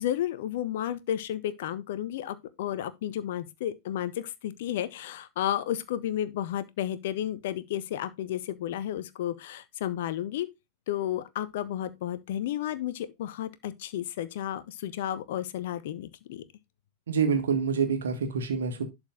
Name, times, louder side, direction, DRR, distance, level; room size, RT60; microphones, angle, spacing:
voice 1, 0.0-10.5 10.9-16.4, left 11 dB, 55° left, 0.9 m, -32 dB
voice 2, 17.1-18.8, right 6 dB, 65° right, 1.8 m, -26 dB
11.5 x 4.5 x 3.8 m
figure-of-eight pair, 90°, 0 cm